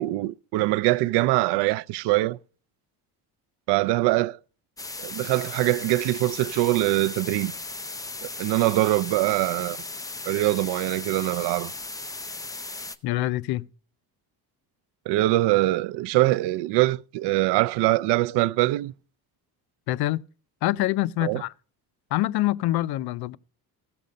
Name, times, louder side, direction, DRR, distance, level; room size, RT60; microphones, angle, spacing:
voice 1, 0.0-2.4 3.7-4.4 5.0-7.5 8.4-9.8 10.3-11.7 15.1-18.9 21.2-21.4, right 18 dB, 85° right, 0.5 m, -23 dB
sound 1, 4.8-13.0, left 3 dB, 10° left, 0.5 m, -36 dB
voice 2, 13.0-13.7 19.9-20.2 20.6-21.5 22.1-23.4, left 16 dB, 70° left, 0.5 m, -25 dB
15.5 x 6.9 x 5.1 m
cardioid pair, 150°, 40 cm